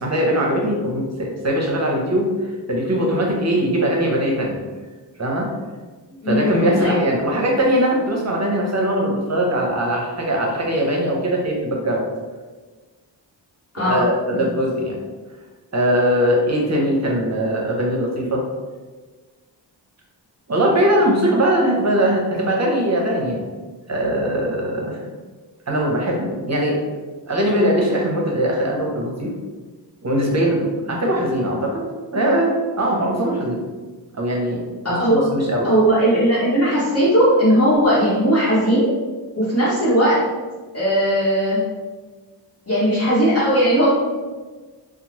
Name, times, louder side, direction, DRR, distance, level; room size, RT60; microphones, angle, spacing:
voice 1, 0.0-4.6 5.2-5.5 6.3-12.0 13.8-15.0 15.7-18.4 20.5-23.5 23.9-25.0 25.7-26.8 27.3-29.3 30.0-31.8 32.1-33.6 34.1-35.7, equal, 35° right, -1 dB, 0.7 m, -21 dB
voice 2, 6.2-7.0 13.7-14.0 14.3-14.5 34.8-35.2 35.6-38.9 39.4-40.2 40.7-41.6 42.7-43.9, equal, 35° left, -11 dB, 1.2 m, -18 dB
2.9 x 2.0 x 2.9 m, 1.3 s
cardioid pair, 70°, 44 cm